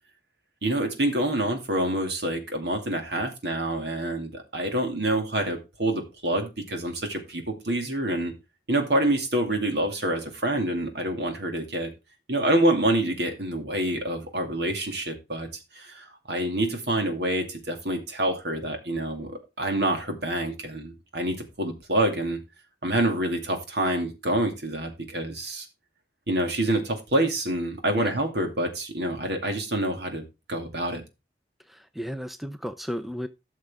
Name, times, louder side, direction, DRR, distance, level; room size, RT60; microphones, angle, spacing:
voice 1, 0.6-8.3 8.7-11.9 12.3-15.5 15.7-22.4 22.8-25.7 26.3-31.0, right 1 dB, 65° right, 2.4 m, -27 dB
voice 2, 31.7-33.3, equal, ahead, 0.4 m, -34 dB
13.0 x 6.5 x 3.6 m
head